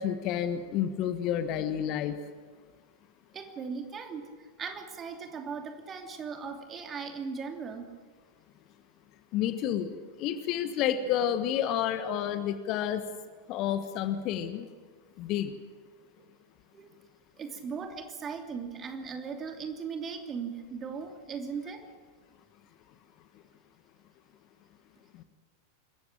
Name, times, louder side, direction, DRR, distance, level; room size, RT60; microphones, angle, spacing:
voice 1, 0.0-2.1 9.3-13.0 13.5-14.6 15.2-15.5 25.2-25.3, left 10 dB, 40° left, 10 dB, 1.4 m, -30 dB
voice 2, 3.3-4.3 4.6-7.9 16.2-16.3 16.7-16.9 17.4-21.9, right 5 dB, 25° right, 4 dB, 2.9 m, -38 dB
26.0 x 15.0 x 9.0 m, 1.5 s
figure-of-eight pair, 90°, 0 cm